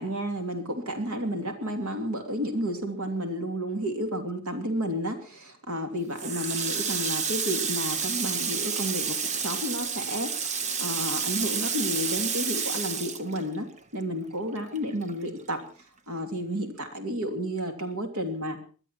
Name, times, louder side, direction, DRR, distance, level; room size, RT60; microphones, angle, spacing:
voice 1, 0.0-15.6 16.1-18.6, equal, 80° right, 5 dB, 3.1 m, -31 dB
Water tap faucet, 6.2-14.0 14.3-15.6, right 6 dB, 35° right, 1.0 m, -30 dB
21.5 x 12.5 x 4.5 m, 0.39 s
head